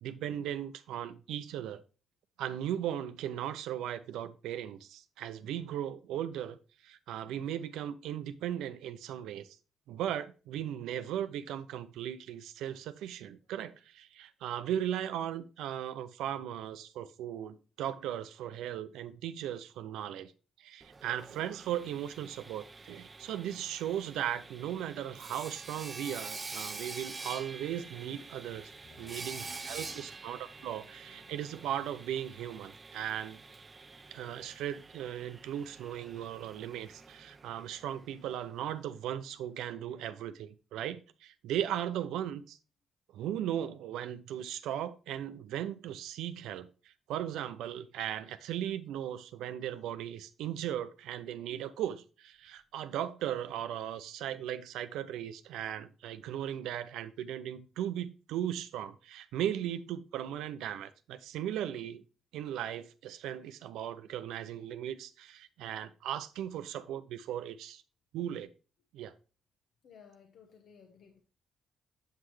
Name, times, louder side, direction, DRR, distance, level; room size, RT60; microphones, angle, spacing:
voice 1, 0.0-1.8 2.4-6.6 6.8-9.6 9.9-20.3 20.6-28.7 29.0-33.4 34.1-42.6 43.1-62.0 62.3-67.8 68.1-68.5 68.9-69.1, right 10 dB, 90° right, 0.5 m, -37 dB
Sawing, 20.8-38.6, right 3 dB, 30° right, 0.5 m, -47 dB
voice 2, 28.4-30.1 30.4-31.6 41.5-41.8 69.8-71.2, left 5 dB, 70° left, 1.0 m, -58 dB
7.4 x 5.8 x 3.2 m
cardioid pair, 90°, 0 cm